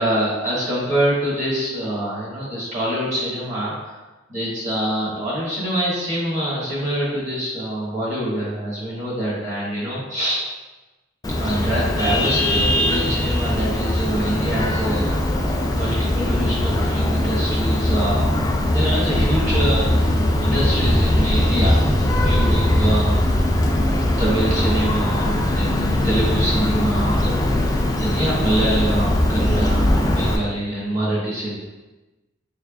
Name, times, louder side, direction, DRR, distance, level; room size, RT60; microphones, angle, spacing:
voice 1, 0.0-4.0 4.3-10.4 11.3-15.5 15.7-18.3 18.7-20.1 20.4-23.2 24.2-27.2 27.9-31.5, right 1 dB, 40° right, -7 dB, 1.4 m, -25 dB
Vehicle horn car horn honking, 11.2-30.4, left 1 dB, 20° left, 0.3 m, -20 dB
4.3 x 3.4 x 2.3 m, 1.1 s
head